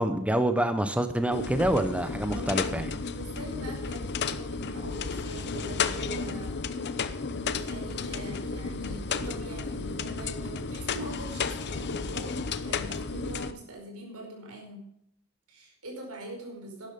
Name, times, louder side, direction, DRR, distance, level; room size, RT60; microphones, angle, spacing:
voice 1, 0.0-2.9, right 1 dB, 5° right, 8 dB, 0.8 m, -26 dB
sound 1, 1.3-13.5, left 5 dB, 50° left, 0.7 m, -33 dB
voice 2, 2.3-2.7 3.1-6.6 7.3-14.8 15.5-16.9, right 1 dB, 85° right, 1 dB, 4.9 m, -42 dB
12.0 x 10.5 x 5.2 m, 0.75 s
head